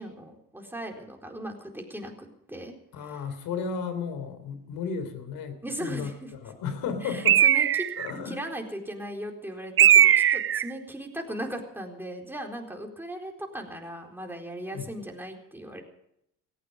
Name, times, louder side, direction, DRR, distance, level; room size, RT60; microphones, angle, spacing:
voice 1, 0.0-2.7 3.1-3.2 5.6-6.1 7.0-7.9 8.2-15.8, right 1 dB, 5° right, 2 dB, 4.2 m, -38 dB
voice 2, 2.9-7.4 8.0-8.4 14.7-14.9, left 6 dB, 80° left, 9 dB, 3.5 m, -34 dB
Bird, 7.3-8.1 9.8-10.7, right 10 dB, 40° right, 0.6 m, -19 dB
18.0 x 15.0 x 5.3 m, 0.77 s
cardioid pair, 95°, 34 cm